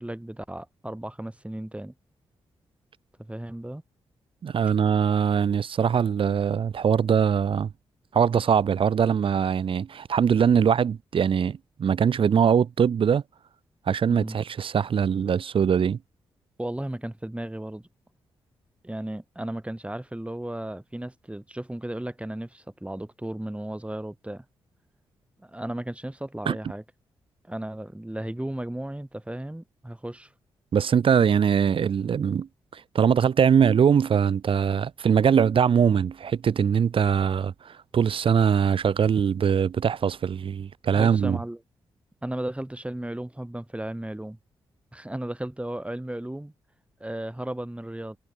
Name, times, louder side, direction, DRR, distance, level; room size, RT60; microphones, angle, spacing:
voice 1, 0.0-1.9 3.2-3.8 14.1-14.4 16.6-17.9 18.8-24.4 25.4-26.8 27.4-30.3 40.9-41.6 42.2-44.4 44.9-46.5 47.0-48.2, right 1 dB, 10° right, 6.1 m, -35 dB
voice 2, 4.4-7.7 8.1-13.2 13.9-16.0 26.5-26.6 30.7-41.4, right 7 dB, 55° right, 0.8 m, -22 dB
hypercardioid pair, 40°, 11 cm